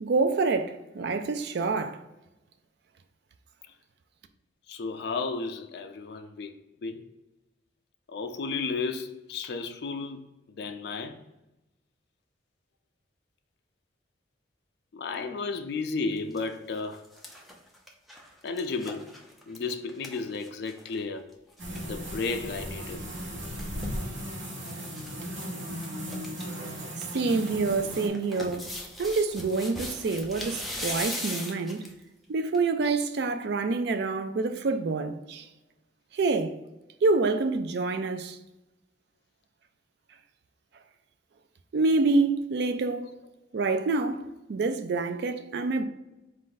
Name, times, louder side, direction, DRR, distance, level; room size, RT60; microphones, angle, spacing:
voice 1, 0.0-2.0 27.1-28.7 29.0-31.8 32.3-35.5 36.1-36.6 37.0-38.4 41.7-43.1 43.5-45.8, right 3 dB, 65° right, 0.4 m, -27 dB
voice 2, 4.7-6.5 6.8-7.1 8.1-10.2 10.6-11.2 14.9-17.0 18.4-19.2 19.5-21.3 21.8-23.1 43.0-43.1, left 4 dB, 60° left, 0.4 m, -33 dB
sound 1, 16.1-16.4 16.8-21.0 21.3-21.4 21.6-21.8 23.1-24.0 24.6-25.1 25.4-25.5 25.8-26.4 26.8-32.0 32.5-32.6, left 1 dB, ahead, 0.5 m, -39 dB
sound 2, 21.6-28.1, equal, 85° right, 1.1 m, -36 dB
4.3 x 2.5 x 3.8 m
head